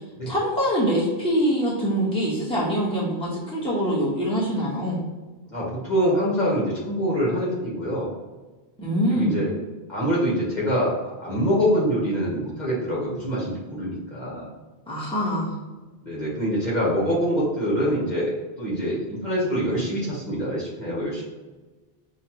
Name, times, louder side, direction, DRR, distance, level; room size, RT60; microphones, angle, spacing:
voice 1, 0.0-5.1 8.8-9.4 14.9-15.6, equal, 5° left, -7 dB, 1.0 m, -24 dB
voice 2, 5.5-8.1 9.1-9.5 9.9-10.9 11.2-14.5 16.0-21.2, equal, 45° left, -5 dB, 1.2 m, -25 dB
5.6 x 2.3 x 2.9 m, 1.2 s
omnidirectional pair, 1.1 m